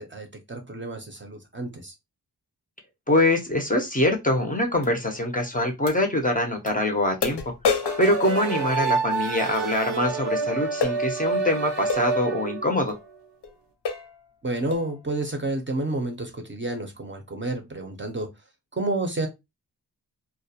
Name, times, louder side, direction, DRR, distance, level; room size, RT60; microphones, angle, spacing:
voice 1, 0.0-1.9 14.4-18.3 18.7-19.3, right 2 dB, 30° right, 4 dB, 0.5 m, -30 dB
voice 2, 3.1-7.4 8.0-12.9, left 1 dB, 20° left, 3 dB, 0.5 m, -24 dB
sound 1, 4.8-4.9 5.9-6.0 6.7-6.8 7.2-9.2 10.8-11.0 11.9-12.1 12.9-13.0 13.4-13.5 13.8-14.1 14.7-14.9, left 5 dB, 85° left, 0.6 m, -29 dB
sound 2, 7.8-12.9, right 4 dB, 85° right, 0.6 m, -28 dB
2.3 x 2.0 x 2.7 m, 0.22 s
wide cardioid pair, 110°, 40 cm